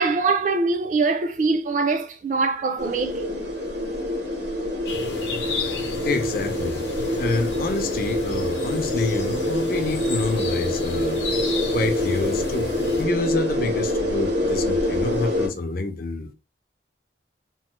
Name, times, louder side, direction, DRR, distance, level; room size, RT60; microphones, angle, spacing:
voice 1, 0.0-3.4, right 4 dB, 45° right, 0.4 m, -23 dB
sound 1, 2.8-15.5, left 1 dB, 75° right, 1.0 m, -26 dB
sound 2, 4.9-13.0, left 4 dB, 80° left, 0.7 m, -34 dB
voice 2, 6.0-6.8 7.2-11.2 11.7-12.7 13.0-16.3, left 2 dB, 55° left, 0.5 m, -27 dB
3.1 x 2.0 x 3.0 m
head